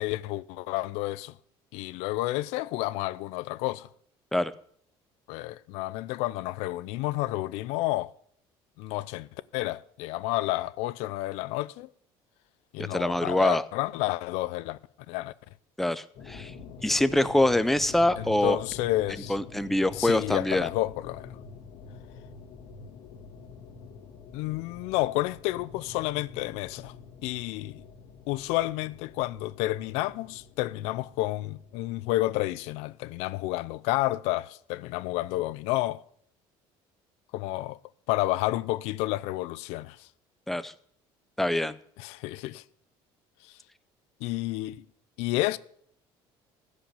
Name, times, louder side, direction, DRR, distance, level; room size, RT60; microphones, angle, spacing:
voice 1, 0.0-1.3 1.7-3.9 5.3-8.1 8.8-11.9 12.7-14.8 15.1-15.3 18.2-19.4 19.9-21.3 24.3-26.9 27.2-27.8 28.3-36.0 37.3-37.8 38.1-40.1 42.0-42.6 44.2-44.8 45.2-45.6, left 17 dB, 90° left, 0.5 m, -30 dB
voice 2, 12.9-13.6 15.8-16.5 16.8-18.6 19.3-20.7 40.5-40.7 41.4-41.8, left 1 dB, ahead, 0.5 m, -24 dB
sound 1, 16.1-32.9, left 5 dB, 65° left, 2.0 m, -47 dB
15.0 x 5.1 x 8.8 m
cardioid pair, 135°, 11 cm